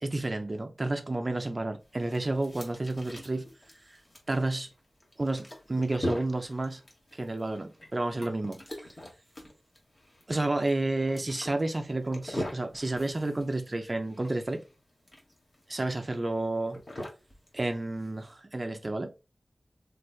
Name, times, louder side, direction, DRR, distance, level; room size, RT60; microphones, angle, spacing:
voice 1, 0.0-3.5 3.9-4.0 4.3-4.7 5.2-6.8 7.1-8.6 10.3-14.6 15.7-16.8 17.5-19.3, right 2 dB, 40° right, 0.5 m, -31 dB
sound 1, 1.8-18.3, left 1 dB, 40° left, 1.3 m, -42 dB
3.3 x 3.2 x 2.3 m
wide cardioid pair, 70°, 0 cm